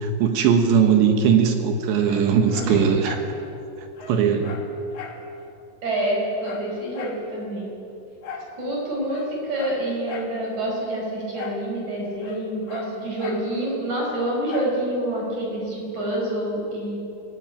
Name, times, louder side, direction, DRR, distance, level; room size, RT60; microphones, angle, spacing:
voice 1, 0.0-3.2 4.1-4.6, right 7 dB, 70° right, 6 dB, 3.4 m, -19 dB
Dog, 2.0-3.3 3.6-3.7 4.0-5.2 5.6-5.7 5.9-7.2 8.2-8.5 9.0-10.4 11.3-11.7 11.9-13.5 14.5-14.8 15.3-15.4, left 5 dB, 50° left, 2.9 m, -39 dB
voice 2, 2.6-2.9 5.8-7.7 8.6-17.0, right 1 dB, 40° right, -2 dB, 6.0 m, -27 dB
25.5 x 17.5 x 9.0 m, 2.9 s
omnidirectional pair, 5.7 m